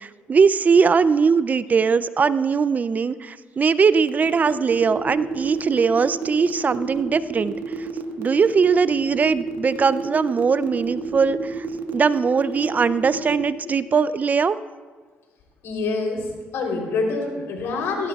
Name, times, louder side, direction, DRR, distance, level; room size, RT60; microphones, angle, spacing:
voice 1, 0.0-7.6 8.2-11.6 11.9-14.6, right 5 dB, 35° right, 15 dB, 0.4 m, -20 dB
sound 1, 4.1-13.4, right 5 dB, 75° right, 1.4 m, -30 dB
voice 2, 15.6-18.1, left 3 dB, 75° left, 0 dB, 3.3 m, -26 dB
18.0 x 16.0 x 2.4 m, 1.4 s
cardioid pair, 80°, 4 cm